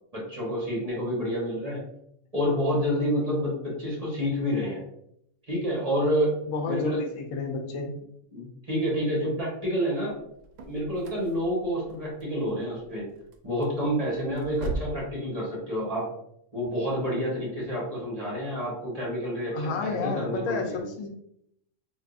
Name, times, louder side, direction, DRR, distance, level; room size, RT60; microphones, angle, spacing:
voice 1, 0.1-1.8 2.3-4.8 5.5-6.4 6.7-7.0 8.3-10.2 10.7-13.1 13.4-16.1 16.5-20.9, equal, 30° right, -6 dB, 1.2 m, -28 dB
voice 2, 6.5-7.9 19.5-21.1, left 3 dB, 80° left, 3 dB, 1.0 m, -31 dB
sound 1, 10.1-15.1, right 3 dB, 75° right, 0.9 m, -39 dB
3.5 x 2.7 x 2.4 m, 0.73 s
omnidirectional pair, 1.3 m